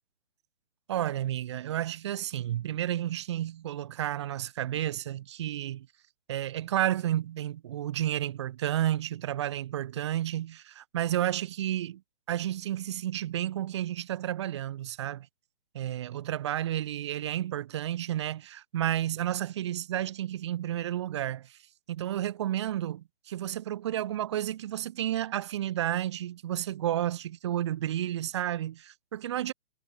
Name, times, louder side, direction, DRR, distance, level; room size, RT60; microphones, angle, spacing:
voice 1, 0.9-5.9 6.3-12.0 12.3-15.3 15.7-21.6 21.9-29.5, right 12 dB, 25° right, 6.5 m, -31 dB
hypercardioid pair, 180°, 32 cm